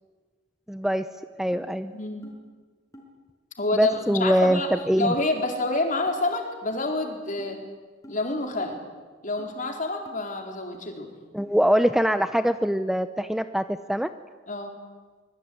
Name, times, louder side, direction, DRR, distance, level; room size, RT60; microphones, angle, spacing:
voice 1, 0.7-1.0 1.4-1.9 3.7-5.1 11.3-14.1, equal, ahead, 10 dB, 0.7 m, -23 dB
sound 1, 1.5-1.7 2.2-2.4 2.9-3.1 3.9-4.0 4.7-4.9 5.4-5.6 6.1-6.2 6.7-6.8 7.4-7.5 8.0-8.2 8.7-8.9 9.4-9.5 10.0-10.2 10.7-10.8 11.4-11.5, equal, 20° left, 5.5 m, -47 dB
voice 2, 1.9-2.3 3.6-4.7 5.0-7.6 8.1-8.8 9.2-11.1 14.5-14.8, left 2 dB, 45° left, 3 dB, 4.3 m, -28 dB
25.5 x 21.5 x 9.5 m, 1.4 s
head